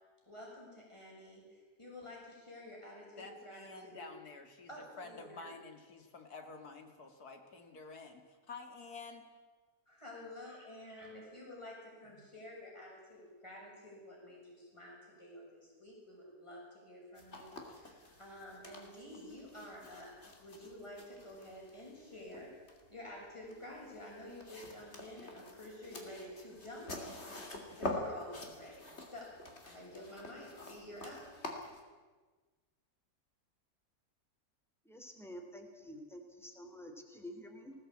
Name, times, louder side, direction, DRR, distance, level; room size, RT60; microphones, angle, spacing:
voice 1, 0.2-4.1 4.7-5.6 9.9-20.1 20.4-22.5 22.9-27.3 27.8-29.3 29.6-31.2, left 1 dB, 20° left, -3 dB, 6.8 m, -50 dB
voice 2, 3.2-9.3 10.1-10.2, left 3 dB, 80° left, 5 dB, 2.8 m, -50 dB
sound 1, 17.2-31.8, left 2 dB, 45° left, 3.0 m, -47 dB
voice 3, 34.8-37.7, equal, ahead, 4 dB, 2.9 m, -49 dB
19.5 x 16.0 x 8.7 m, 1.4 s
omnidirectional pair, 1.6 m